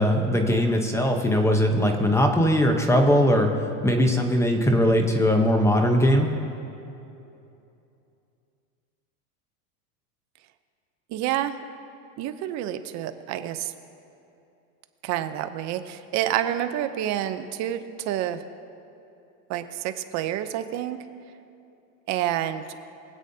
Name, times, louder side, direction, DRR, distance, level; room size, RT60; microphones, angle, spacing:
voice 1, 0.0-3.5 3.8-6.3, equal, 5° left, 4 dB, 0.8 m, -20 dB
voice 2, 11.1-11.5 12.2-13.7 15.0-18.4 19.5-21.0 22.1-22.6, right 12 dB, 35° right, 10 dB, 0.7 m, -28 dB
23.0 x 8.1 x 2.7 m, 2.7 s
supercardioid pair, 140°, 47 cm